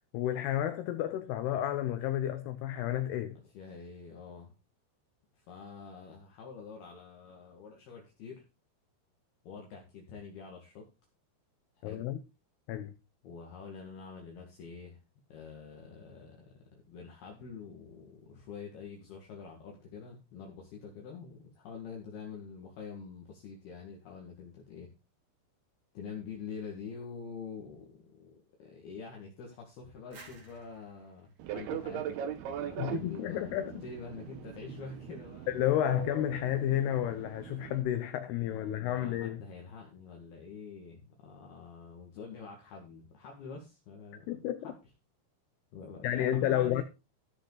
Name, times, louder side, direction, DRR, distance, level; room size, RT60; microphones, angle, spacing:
voice 1, 0.1-3.4 11.8-12.2 12.7-12.9 32.8-33.8 35.5-39.4 44.3-44.7 46.0-46.8, left 12 dB, 85° left, 2.3 m, -31 dB
voice 2, 3.5-4.5 5.4-8.4 9.4-10.8 11.8-12.1 13.2-15.0 15.3-24.9 25.9-32.2 32.5-33.5 33.8-35.5 38.3-44.8 45.7-46.8, left 5 dB, 60° left, 3.5 m, -46 dB
sound 1, 30.1-32.8, right 4 dB, 35° right, 3.3 m, -57 dB
Fixed-wing aircraft airplane, 31.4-37.8, right 10 dB, 75° right, 2.5 m, -40 dB
16.0 x 6.5 x 3.9 m
omnidirectional pair, 5.6 m